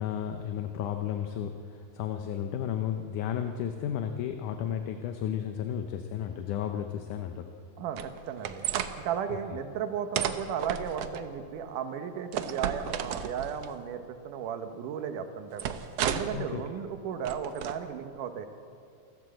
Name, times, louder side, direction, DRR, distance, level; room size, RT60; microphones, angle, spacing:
voice 1, 0.0-7.4 16.3-16.6, left 9 dB, 70° left, 6 dB, 2.2 m, -33 dB
voice 2, 7.8-8.6 9.0-15.7 16.1-18.5, right 8 dB, 70° right, 8 dB, 2.6 m, -35 dB
sound 1, 8.0-8.9 10.2-11.2 12.3-13.7 15.6-16.4 17.3-17.8, right 9 dB, 90° right, 1.4 m, -32 dB
28.0 x 12.5 x 7.7 m, 2.4 s
omnidirectional pair, 4.1 m